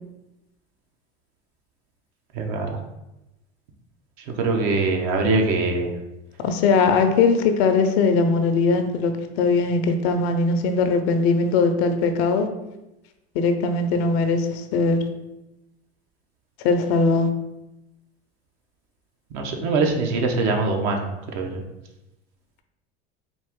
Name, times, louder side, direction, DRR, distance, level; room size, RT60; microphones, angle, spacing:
voice 1, 2.3-2.8 4.4-5.9 19.3-21.1 21.3-21.6, right 3 dB, 65° right, 3 dB, 0.9 m, -22 dB
voice 2, 6.4-12.5 13.3-15.0 16.6-17.3, left 4 dB, 75° left, 7 dB, 0.6 m, -20 dB
4.2 x 2.5 x 3.6 m, 0.93 s
hypercardioid pair, 95°, 32 cm